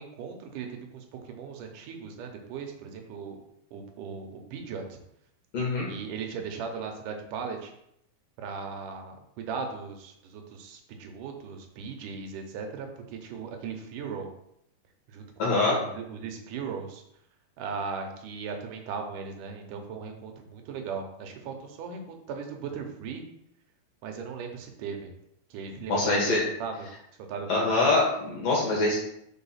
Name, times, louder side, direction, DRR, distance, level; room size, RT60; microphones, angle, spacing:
voice 1, 0.0-3.4 3.7-5.0 5.9-7.7 8.4-14.3 15.1-17.0 17.6-22.0 22.3-23.3 24.0-25.1 25.5-26.7 27.3-27.7, right 5 dB, 70° right, 3 dB, 2.2 m, -38 dB
voice 2, 5.5-5.9 15.4-15.8 25.9-26.4 27.5-29.0, left 3 dB, 55° left, -3 dB, 2.4 m, -24 dB
5.2 x 4.5 x 5.6 m, 0.75 s
omnidirectional pair, 4.2 m